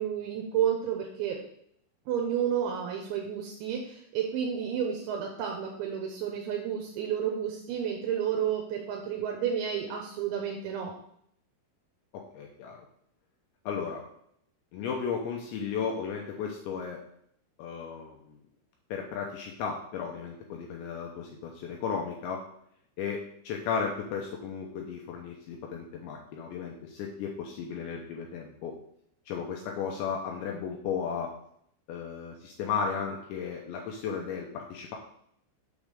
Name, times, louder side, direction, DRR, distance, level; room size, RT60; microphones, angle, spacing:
voice 1, 0.0-1.4 2.1-10.9, right 8 dB, 80° right, 1 dB, 2.9 m, -31 dB
voice 2, 12.1-12.8 13.7-14.0 14.7-17.0 17.6-18.4 18.9-22.4 23.0-28.8 29.3-31.3 31.9-35.0, left 6 dB, 80° left, 0 dB, 2.8 m, -34 dB
7.3 x 3.7 x 6.5 m, 0.68 s
omnidirectional pair, 5.9 m